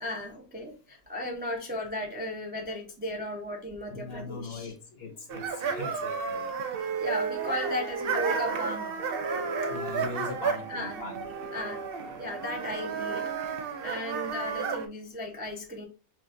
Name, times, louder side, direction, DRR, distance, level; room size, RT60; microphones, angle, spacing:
voice 1, 0.0-4.7 5.9-6.0 6.8-8.9 10.7-11.0 11.5-11.9 12.1-13.3 13.8-15.8, left 1 dB, 10° right, 0.4 m, -35 dB
voice 2, 3.9-6.5 9.7-11.6 13.5-13.6, left 3 dB, 50° left, 1.0 m, -40 dB
sound 1, 5.3-14.9, right 5 dB, 65° right, 0.5 m, -32 dB
5.8 x 2.4 x 2.6 m
omnidirectional pair, 1.5 m